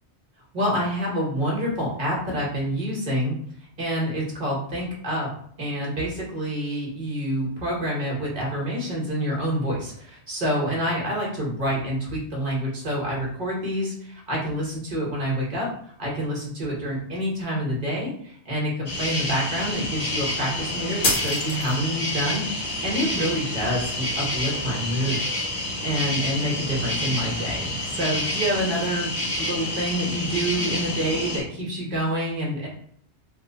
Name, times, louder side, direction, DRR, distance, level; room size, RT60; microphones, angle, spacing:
voice 1, 0.5-3.4 3.8-5.3 5.6-15.7 16.0-25.2 25.6-32.7, equal, 45° right, -4 dB, 1.3 m, -27 dB
sound 1, 18.9-31.4, left 1 dB, 30° left, 0.9 m, -29 dB
sound 2, 21.0-22.1, left 2 dB, 65° left, 1.1 m, -26 dB
2.9 x 2.2 x 3.8 m, 0.62 s
omnidirectional pair, 1.2 m